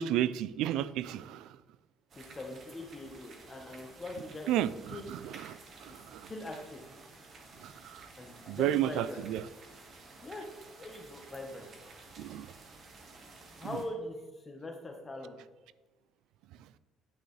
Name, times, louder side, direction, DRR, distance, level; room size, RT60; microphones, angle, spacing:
voice 1, 0.0-1.5 4.5-6.3 7.6-8.0 8.5-9.4 12.2-12.5, right 12 dB, 75° right, 17 dB, 0.3 m, -32 dB
sound 1, 2.1-13.9, right 3 dB, 45° right, 1.2 m, -53 dB
voice 2, 2.2-4.5 4.9-5.1 6.3-6.8 8.2-9.2 10.2-10.4 10.8-11.7 13.6-15.4, left 2 dB, 20° left, 2 dB, 1.2 m, -42 dB
9.2 x 6.4 x 3.2 m, 1.2 s
cardioid pair, 130°, 0 cm